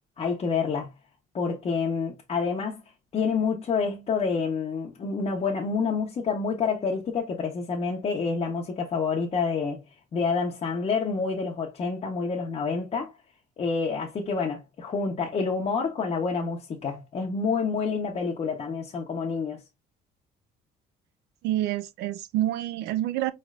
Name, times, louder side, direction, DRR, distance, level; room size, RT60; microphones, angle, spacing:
voice 1, 0.2-0.9 1.3-2.8 3.1-9.8 10.1-13.1 13.6-19.6, left 5 dB, 40° left, 0.9 m, -28 dB
voice 2, 21.4-23.3, right 14 dB, 85° right, 0.5 m, -27 dB
4.3 x 3.2 x 2.4 m
cardioid pair, 110°, 17 cm